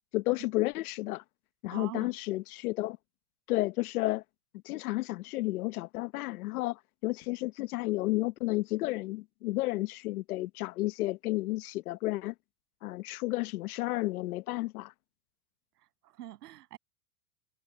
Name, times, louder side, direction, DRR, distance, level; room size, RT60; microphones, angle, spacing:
voice 1, 0.1-1.2 1.6-3.0 3.5-4.2 4.6-12.3 12.8-14.9, left 19 dB, 70° left, 1.2 m, -32 dB
voice 2, 1.7-2.1 15.8-16.8, right 14 dB, 85° right, 7.6 m, -45 dB
supercardioid pair, 160°, 46 cm